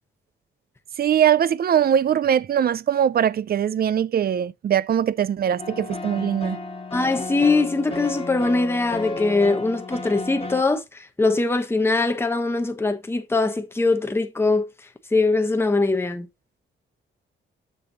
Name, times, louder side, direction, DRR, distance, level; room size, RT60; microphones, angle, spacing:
voice 1, 1.0-6.6, right 9 dB, 50° right, 0.5 m, -21 dB
sound 1, 5.6-10.6, left 2 dB, 30° left, 1.8 m, -33 dB
voice 2, 6.9-14.7 15.1-16.3, left 3 dB, 10° left, 1.1 m, -22 dB
7.3 x 6.6 x 2.9 m
cardioid pair, 115°, 20 cm